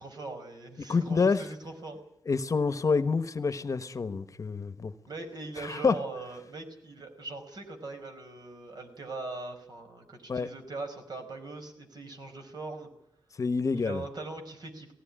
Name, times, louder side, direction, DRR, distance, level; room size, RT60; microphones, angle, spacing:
voice 1, 0.0-2.0 5.1-12.9 13.7-14.9, right 3 dB, 60° right, 5 dB, 4.9 m, -41 dB
voice 2, 0.8-1.4 2.3-4.9 5.6-6.0 10.3-10.5 13.4-14.0, left 4 dB, 45° left, 13 dB, 1.0 m, -27 dB
19.0 x 16.5 x 10.0 m, 0.77 s
wide cardioid pair, 130°, 8 cm